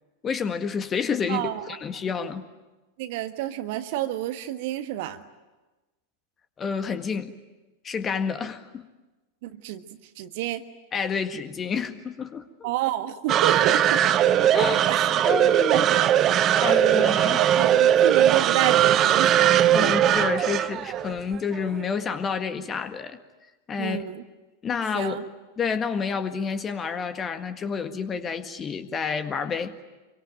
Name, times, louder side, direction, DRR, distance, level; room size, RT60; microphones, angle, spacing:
voice 1, 0.2-2.4 6.6-7.3 7.8-8.9 10.9-12.7 14.5-14.9 15.3-15.8 16.6-17.4 19.7-23.2 23.7-24.0 24.6-25.2 25.6-29.8, left 6 dB, 25° left, 9 dB, 1.8 m, -29 dB
voice 2, 1.3-1.6 3.0-5.2 9.4-9.8 10.1-10.6 12.6-14.0 14.6-15.1 15.7-16.2 16.6-19.5 19.8-19.9 23.8-24.2 24.9-25.2, right 13 dB, 50° right, 9 dB, 1.5 m, -29 dB
sound 1, 13.3-21.7, right 11 dB, 30° right, 0.9 m, -20 dB
27.5 x 24.0 x 9.0 m, 1.2 s
figure-of-eight pair, 90°, 0 cm